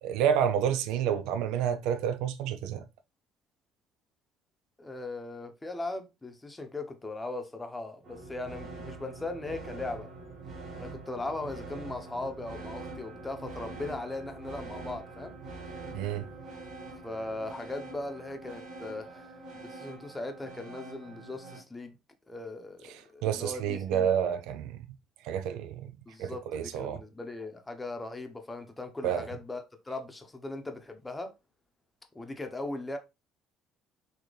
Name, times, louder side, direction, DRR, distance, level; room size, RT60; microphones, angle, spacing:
voice 1, 0.0-2.8 15.9-16.3 23.2-24.8 25.2-25.9 26.2-27.0 29.0-29.3, right 9 dB, 80° right, 0.4 m, -29 dB
voice 2, 4.8-10.1 10.8-15.4 17.0-22.0 22.3-24.1 26.1-31.3 32.1-33.0, left 2 dB, 15° left, 0.8 m, -39 dB
sound 1, 8.0-21.6, right 3 dB, 55° right, 1.4 m, -44 dB
4.0 x 2.8 x 3.1 m
cardioid pair, 95°, 0 cm